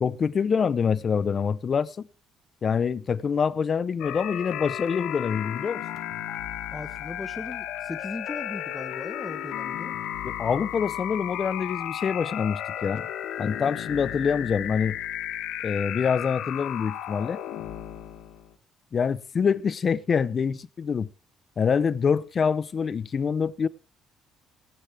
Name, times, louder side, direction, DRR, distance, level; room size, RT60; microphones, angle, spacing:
voice 1, 0.0-2.1 2.6-5.8 10.2-13.1 13.4-15.0 15.6-17.4 18.9-21.1 21.6-23.7, left 6 dB, 40° left, 0.7 m, -25 dB
sound 1, 4.0-18.5, left 11 dB, 85° left, 1.9 m, -34 dB
voice 2, 6.7-9.9, left 2 dB, 15° left, 1.1 m, -38 dB
18.0 x 10.0 x 3.3 m
cardioid pair, 110°, 0 cm